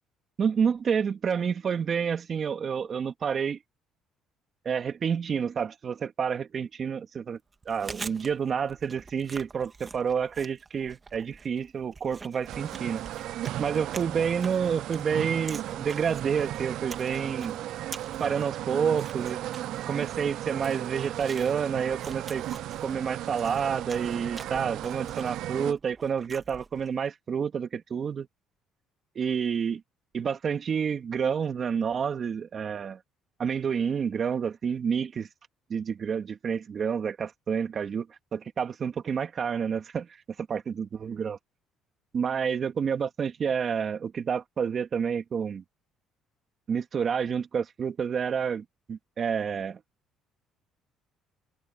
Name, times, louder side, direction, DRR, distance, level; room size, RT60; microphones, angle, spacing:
voice 1, 0.4-3.6 4.6-7.4 7.7-13.0 13.6-17.6 18.2-19.5 19.9-22.4 22.8-28.3 29.1-29.8 30.1-33.0 33.4-35.3 35.7-38.1 38.3-40.1 40.5-41.4 42.1-45.6 46.7-49.8, right 7 dB, 40° right, 2.6 m, -29 dB
Chewing mastication, 7.5-27.0, right 4 dB, 25° right, 1.9 m, -46 dB
sound 1, 12.5-25.7, right 13 dB, 70° right, 0.5 m, -35 dB
cardioid pair, 105°, 0 cm